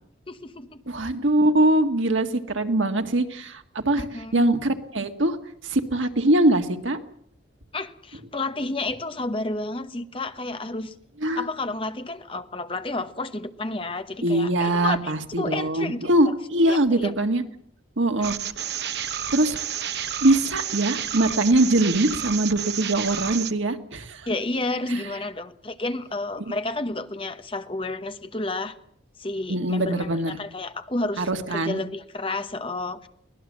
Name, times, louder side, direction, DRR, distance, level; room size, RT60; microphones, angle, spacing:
voice 1, 0.3-0.8 4.0-4.5 7.7-10.9 11.4-16.1 16.7-17.1 18.2-18.3 24.3-28.8 29.2-33.1, left 2 dB, 30° left, 9 dB, 1.1 m, -31 dB
voice 2, 0.9-4.1 4.3-5.4 5.6-7.0 11.2-11.5 14.2-17.4 18.0-18.3 19.3-19.6 20.2-24.3 24.9-25.0 26.5-26.6 29.5-30.4 31.2-31.8, right 1 dB, 90° right, 6 dB, 1.9 m, -22 dB
sound 1, 18.2-23.5, right 9 dB, 60° right, 1.1 m, -31 dB
23.5 x 18.5 x 7.5 m, 0.66 s
head